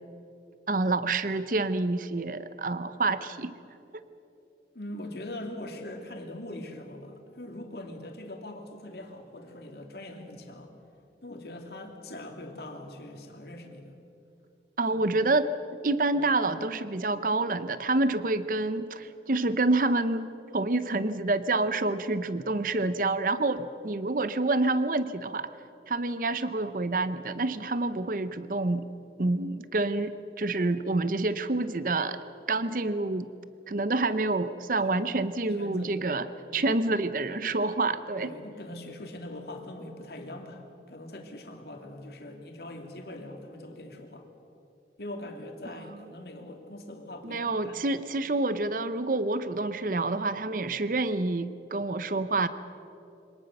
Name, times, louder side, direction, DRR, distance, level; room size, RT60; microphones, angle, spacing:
voice 1, 0.7-3.5 14.8-25.5 25.9-28.9 29.2-32.2 32.5-33.3 33.7-36.3 36.5-38.3 45.9-46.0 47.2-52.5, right 2 dB, 50° right, 13 dB, 0.7 m, -28 dB
voice 2, 4.7-10.7 11.2-13.9 14.9-15.0 16.1-16.2 35.0-35.1 35.6-36.1 36.4-36.7 38.2-44.3 45.0-47.8, left 1 dB, 65° left, 3 dB, 2.6 m, -42 dB
25.0 x 19.0 x 6.6 m, 2.9 s
head